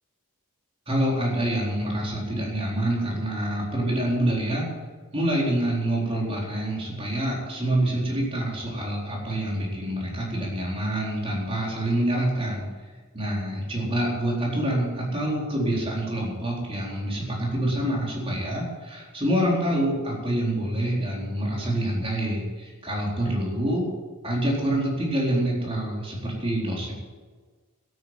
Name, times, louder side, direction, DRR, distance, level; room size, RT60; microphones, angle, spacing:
voice 1, 0.9-4.7 5.1-12.7 13.1-23.8 24.2-26.9, right 1 dB, 25° right, -3 dB, 4.2 m, -26 dB
13.0 x 9.4 x 9.1 m, 1.4 s
head